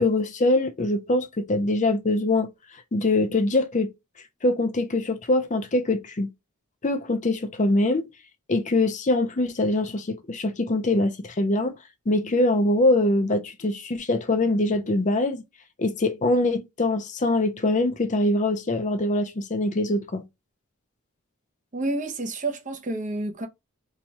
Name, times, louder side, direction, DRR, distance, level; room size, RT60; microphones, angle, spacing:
voice 1, 0.0-2.5 2.9-3.9 4.4-6.3 6.8-8.1 8.5-11.7 12.1-15.4 15.8-20.2, left 2 dB, 35° left, 0.6 m, -23 dB
voice 2, 21.7-23.5, right 2 dB, 35° right, 0.7 m, -29 dB
2.9 x 2.3 x 4.1 m
head